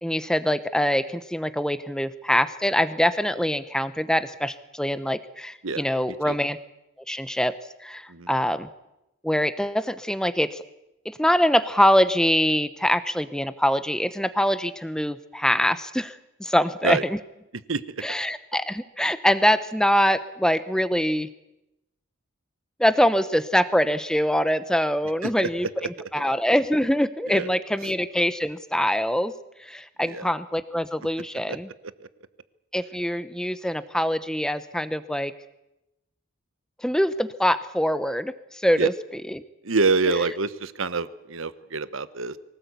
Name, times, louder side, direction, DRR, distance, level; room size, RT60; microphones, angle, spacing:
voice 1, 0.0-6.6 7.1-7.5 7.8-8.7 9.2-10.6 11.0-17.2 18.0-21.3 22.8-29.3 29.6-31.7 32.7-35.3 36.8-39.4 40.1-40.2, equal, 5° left, 13 dB, 0.9 m, -24 dB
voice 2, 39.6-42.4, right 4 dB, 75° right, 14 dB, 1.1 m, -26 dB
24.0 x 18.0 x 8.3 m, 0.91 s
head